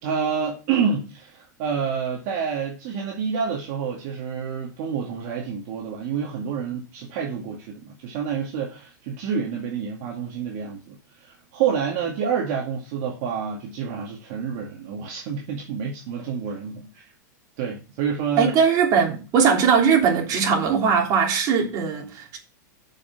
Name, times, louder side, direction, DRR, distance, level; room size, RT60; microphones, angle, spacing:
voice 1, 0.0-17.0 17.6-18.5, right 6 dB, 55° right, 2.2 m, -28 dB
voice 2, 18.4-22.4, right 6 dB, 40° right, 3.2 m, -20 dB
7.0 x 5.8 x 7.2 m
supercardioid pair, 135°, 10 cm